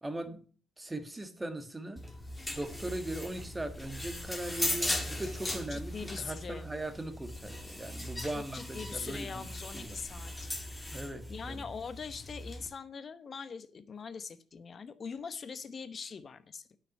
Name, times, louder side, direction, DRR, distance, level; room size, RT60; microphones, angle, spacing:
voice 1, 0.0-0.4 0.8-2.0 2.5-9.5 9.7-10.0 10.9-11.6, right 1 dB, 15° right, 8 dB, 1.5 m, -39 dB
sound 1, 2.0-12.7, left 1 dB, 15° left, 2.0 m, -39 dB
voice 2, 5.7-6.7 8.3-16.8, left 5 dB, 40° left, 13 dB, 1.0 m, -42 dB
9.6 x 5.9 x 6.4 m, 0.40 s
cardioid pair, 90°, 0 cm